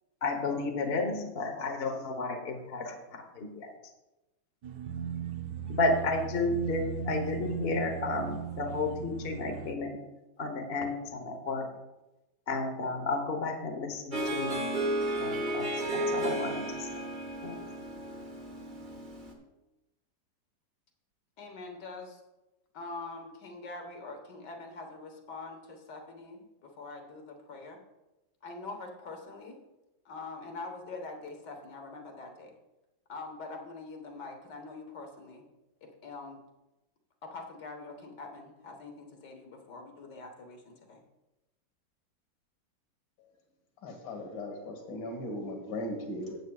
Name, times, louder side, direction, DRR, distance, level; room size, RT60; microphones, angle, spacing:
voice 1, 0.2-3.7 5.7-10.0 10.4-11.7 12.5-14.6 15.2-15.6 15.9-16.9 17.4-17.6, left 3 dB, 40° left, 3 dB, 1.0 m, -32 dB
sound 1, 4.6-9.7, right 8 dB, 65° right, 1.1 m, -37 dB
Harp, 14.1-19.3, right 1 dB, 30° right, 1.2 m, -33 dB
voice 2, 21.4-22.2 22.7-27.8 28.4-29.6 30.1-32.5 33.1-35.4 35.8-36.4 37.2-41.0, left 3 dB, 60° left, 3 dB, 1.9 m, -44 dB
voice 3, 43.8-46.4, left 1 dB, 80° left, 4 dB, 2.3 m, -38 dB
14.5 x 8.2 x 2.4 m, 1.0 s
omnidirectional pair, 2.1 m